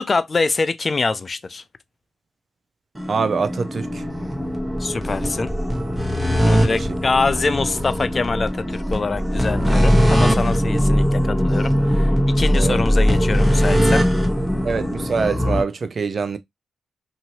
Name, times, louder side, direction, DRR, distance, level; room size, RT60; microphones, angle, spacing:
voice 1, 0.0-1.6 4.8-5.5 6.4-14.0, left 4 dB, 45° left, 0.3 m, -24 dB
sound 1, 2.9-15.6, equal, 10° right, 1.0 m, -20 dB
voice 2, 3.1-4.0 6.7-6.9 12.5-12.8 14.6-16.4, right 5 dB, 55° right, 0.4 m, -24 dB
2.8 x 2.7 x 2.8 m
supercardioid pair, 55°, 0 cm